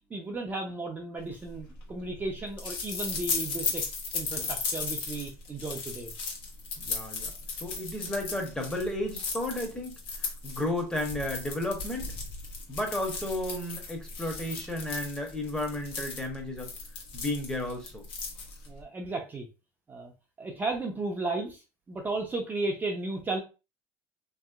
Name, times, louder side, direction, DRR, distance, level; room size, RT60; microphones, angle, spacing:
voice 1, 0.1-3.8 4.1-6.1 18.7-19.5 19.9-20.1 20.4-21.6 21.9-23.4, right 2 dB, 20° right, 0.6 m, -34 dB
sound 1, 1.4-18.8, left 4 dB, 65° left, 1.2 m, -36 dB
voice 2, 6.8-7.3 7.6-12.1 12.7-16.7 17.1-18.0, left 1 dB, 10° left, 0.9 m, -33 dB
3.0 x 2.8 x 2.4 m
supercardioid pair, 110°, 9 cm